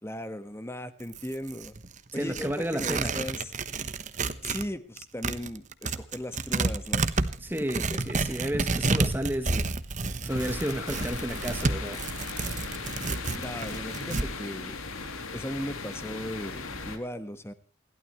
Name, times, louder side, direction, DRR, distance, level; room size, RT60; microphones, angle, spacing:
voice 1, 0.0-1.7 2.1-3.5 4.4-7.2 7.7-8.0 13.3-14.8 15.3-17.5, left 1 dB, 10° left, 1.4 m, -37 dB
Tearing, 1.0-4.7 5.0-14.3, right 3 dB, 35° right, 1.1 m, -30 dB
voice 2, 2.1-3.2 7.4-9.7 10.2-12.0, right 1 dB, 10° right, 1.1 m, -32 dB
sound 1, 10.3-17.0, left 4 dB, 90° left, 3.0 m, -38 dB
28.5 x 12.5 x 3.1 m
head